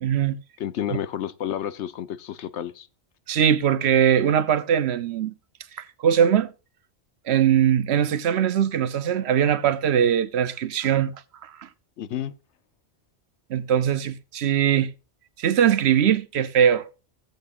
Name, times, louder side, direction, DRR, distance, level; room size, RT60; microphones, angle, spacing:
voice 1, 0.0-0.4 3.3-5.3 6.0-6.5 7.3-11.1 13.5-14.9 15.4-16.9, right 9 dB, 75° right, 0.9 m, -21 dB
voice 2, 0.6-2.9 12.0-12.3, left 10 dB, 90° left, 1.0 m, -30 dB
16.0 x 7.8 x 2.5 m
omnidirectional pair, 1.1 m